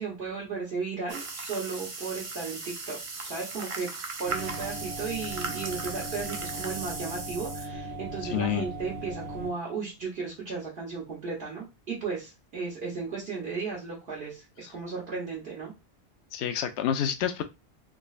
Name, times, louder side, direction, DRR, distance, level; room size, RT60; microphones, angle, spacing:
voice 1, 0.0-3.9 4.2-15.7, right 4 dB, 65° right, 1.3 m, -35 dB
sound 1, 1.1-7.7, right 3 dB, 35° right, 0.6 m, -37 dB
sound 2, 4.2-9.5, right 1 dB, 85° right, 1.5 m, -38 dB
voice 2, 8.3-8.7 16.3-17.4, left 9 dB, 85° left, 0.8 m, -28 dB
3.7 x 3.0 x 2.4 m
omnidirectional pair, 1.1 m